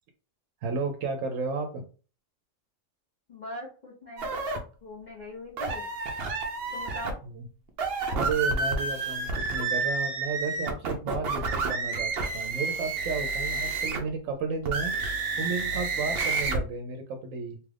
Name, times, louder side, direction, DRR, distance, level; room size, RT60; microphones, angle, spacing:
voice 1, 0.6-1.8 7.3-7.4 8.1-14.9 15.4-17.6, right 4 dB, 90° right, 5 dB, 1.0 m, -33 dB
voice 2, 3.3-4.4 4.8-5.9 6.7-7.2, left 1 dB, 40° left, -4 dB, 0.8 m, -41 dB
sound 1, 4.2-4.6 5.6-7.1 7.7-14.1 14.6-16.6, right 4 dB, 60° right, 0.8 m, -30 dB
3.0 x 2.4 x 3.2 m, 0.36 s
omnidirectional pair, 1.3 m